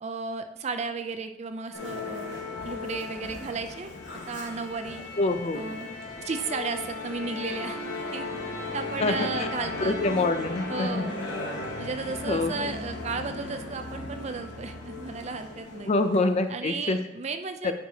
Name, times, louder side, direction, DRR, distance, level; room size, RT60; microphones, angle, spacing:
voice 1, 0.0-2.4 2.6-3.9 4.3-5.1 5.5-5.9 6.2-7.8 8.1-8.3 8.7-10.0 10.7-11.2 11.8-15.9 16.5-17.7, right 4 dB, 35° right, 8 dB, 0.4 m, -34 dB
Musical instrument, 1.7-16.4, left 3 dB, 65° left, 1.4 m, -36 dB
voice 2, 5.2-5.7 9.0-9.5 9.8-11.1 12.3-12.7 15.9-17.0 17.6-17.7, left 2 dB, 35° left, 8 dB, 0.5 m, -26 dB
9.9 x 4.6 x 2.8 m, 0.82 s
head